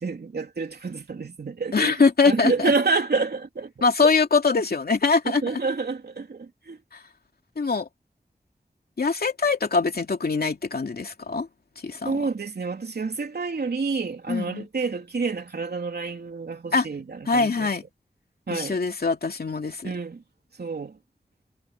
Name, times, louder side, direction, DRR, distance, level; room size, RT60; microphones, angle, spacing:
voice 1, 0.0-1.9 2.2-4.1 5.4-6.8 12.0-17.7 18.5-18.8 19.8-20.2 20.6-21.0, right 4 dB, 85° right, 3.4 m, -28 dB
voice 2, 1.7-2.7 3.8-5.6 6.9-7.0 7.6-7.9 9.0-11.5 11.8-12.2 14.3-14.7 16.7-16.9 17.3-17.8 18.5-19.9, left 4 dB, 75° left, 2.6 m, -23 dB
wide cardioid pair, 85°, 16 cm